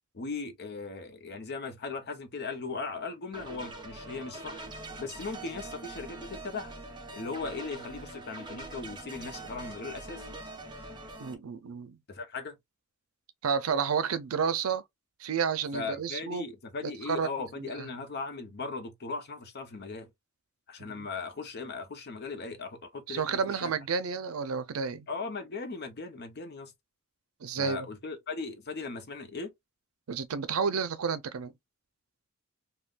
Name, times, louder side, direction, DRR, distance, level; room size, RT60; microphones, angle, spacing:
voice 1, 0.1-4.7 5.0-6.8 7.1-10.3 12.1-12.6 15.7-20.1 20.7-23.7 25.1-26.7 27.6-29.5, left 4 dB, 50° left, 0.7 m, -38 dB
sound 1, 3.3-11.3, right 2 dB, 20° right, 0.7 m, -43 dB
voice 2, 11.2-12.0 13.4-14.8 15.2-16.4 16.8-17.3 17.6-17.9 20.8-21.1 23.1-25.1 27.4-27.9 30.1-31.5, right 6 dB, 75° right, 0.5 m, -31 dB
3.6 x 2.2 x 2.4 m
head